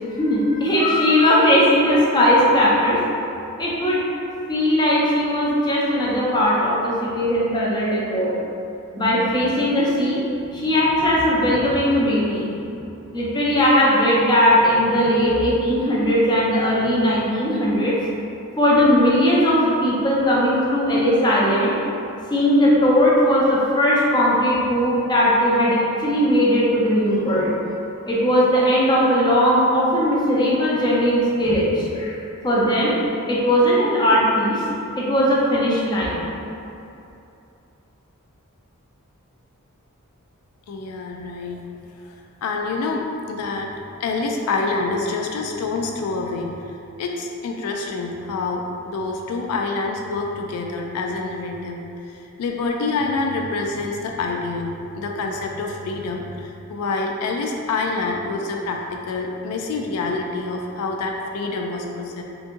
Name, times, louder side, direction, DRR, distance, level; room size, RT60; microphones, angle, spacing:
voice 1, 0.2-3.0 3.6-4.0 4.5-8.3 8.9-10.2 10.5-12.5 13.1-18.0 18.6-21.8 22.3-27.6 28.1-32.2 32.4-33.0 33.3-34.6 35.0-36.2, equal, 20° left, -6 dB, 0.5 m, -18 dB
voice 2, 40.7-41.6 42.4-51.8 52.4-54.7 55.0-62.2, left 3 dB, 80° left, 2 dB, 0.3 m, -27 dB
3.5 x 2.9 x 2.5 m, 2.7 s
head